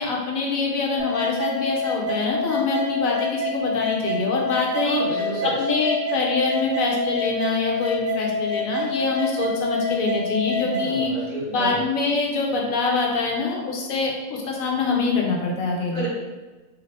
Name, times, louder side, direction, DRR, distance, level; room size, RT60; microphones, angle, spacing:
voice 1, 0.0-5.0 5.6-11.1 11.5-16.1, left 4 dB, 70° left, -1 dB, 1.1 m, -24 dB
sound 1, 1.0-11.0, left 2 dB, 75° right, 1.2 m, -27 dB
voice 2, 4.8-5.6 10.6-11.8 15.9-16.1, right 2 dB, 50° right, -4 dB, 1.0 m, -30 dB
3.2 x 2.6 x 3.2 m, 1.2 s
omnidirectional pair, 1.6 m